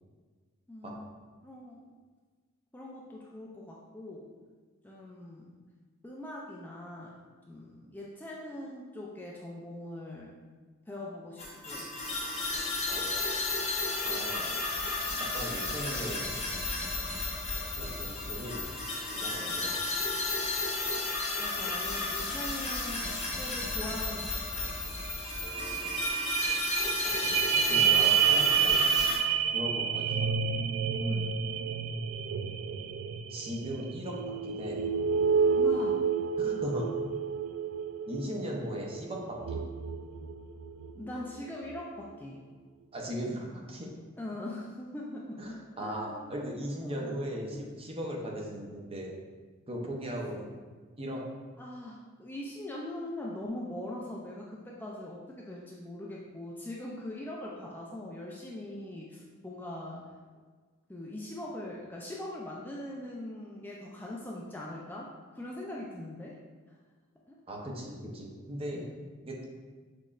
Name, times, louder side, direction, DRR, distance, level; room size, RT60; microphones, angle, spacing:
voice 1, 0.7-1.1 1.4-1.8 2.7-4.3 4.8-5.6 6.0-7.1 7.5-10.3 10.9-11.9 21.4-23.0 23.3-24.7 31.0-31.3 35.5-36.0 40.9-42.4 44.2-46.4 46.8-47.2 51.6-60.1 60.9-66.4 66.7-66.8 67.3-67.4 68.7-68.9, left 1 dB, 10° left, -4 dB, 0.4 m, -41 dB
sound 1, 11.4-29.2, left 3 dB, 30° left, 0.8 m, -33 dB
voice 2, 12.9-13.2 14.0-14.5 15.3-16.3 17.8-19.8 25.4-26.1 27.0-28.8 29.5-30.3 33.3-34.8 36.4-36.8 38.1-39.6 42.9-43.9 45.4-49.2 49.7-50.5 51.0-51.2 67.5-68.8 69.2-69.5, equal, 25° right, -1 dB, 0.7 m, -38 dB
sound 2, 24.7-24.8 25.0-41.0 41.5-41.6, right 7 dB, 70° right, 0.3 m, -29 dB
6.3 x 3.1 x 2.4 m, 1.5 s
head